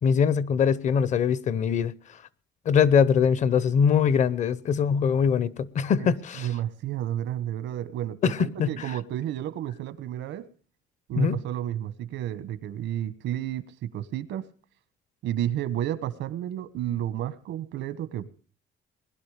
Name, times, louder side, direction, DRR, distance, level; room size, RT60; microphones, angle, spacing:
voice 1, 0.0-1.9 2.7-6.5 8.2-8.9 11.1-11.4, left 7 dB, 40° left, 0.7 m, -22 dB
voice 2, 6.4-10.5 11.1-14.4 15.2-18.3, right 11 dB, 80° right, 1.3 m, -31 dB
20.5 x 11.5 x 5.0 m
cardioid pair, 170°, 19 cm